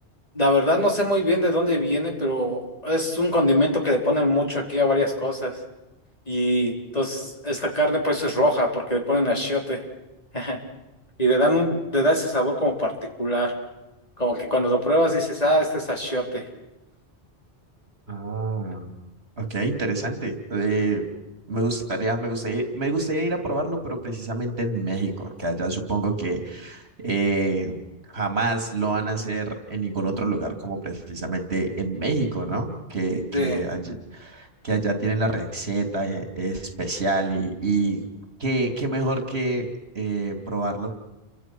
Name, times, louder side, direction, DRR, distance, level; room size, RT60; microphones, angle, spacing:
voice 1, 0.3-5.5 6.3-9.8 10.3-10.6 11.2-12.9 13.2-13.5 14.2-16.4 33.3-33.6, equal, 35° left, 0 dB, 4.3 m, -22 dB
voice 2, 18.1-18.9 19.4-21.1 21.5-27.8 28.1-38.0 38.4-39.7 39.9-40.9, right 2 dB, 70° right, 5 dB, 3.2 m, -27 dB
30.0 x 25.0 x 6.2 m, 0.98 s
omnidirectional pair, 1.1 m